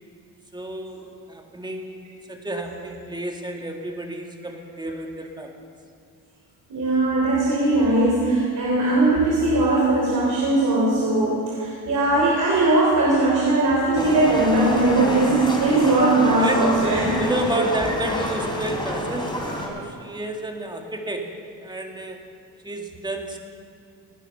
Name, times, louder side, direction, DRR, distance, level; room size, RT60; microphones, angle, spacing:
voice 1, 0.5-5.5 16.4-16.7 17.2-22.2 22.6-23.4, right 1 dB, 10° right, 2 dB, 2.0 m, -31 dB
voice 2, 6.7-17.1 17.6-17.7, right 2 dB, 50° right, -5 dB, 3.6 m, -20 dB
Livestock farm animals working animals, 13.9-19.7, equal, 10° left, 3.3 m, -28 dB
18.0 x 10.0 x 5.9 m, 2.4 s
supercardioid pair, 80°, 38 cm